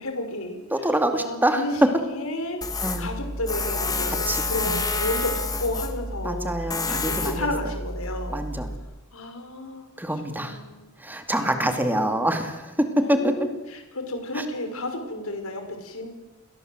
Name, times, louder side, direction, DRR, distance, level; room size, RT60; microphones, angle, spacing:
voice 1, 0.0-1.7 2.1-8.4 9.1-9.9 10.3-10.9 11.6-12.2 13.0-16.1, left 1 dB, 85° left, 6 dB, 5.8 m, -32 dB
voice 2, 0.7-1.9 2.8-3.1 4.2-4.8 6.2-7.5 8.3-8.7 10.0-10.6 11.0-13.5, right 1 dB, 10° right, 6 dB, 2.6 m, -25 dB
Tools, 2.6-8.8, left 3 dB, 20° left, 2.6 m, -29 dB
30.0 x 22.0 x 8.1 m, 1.0 s
head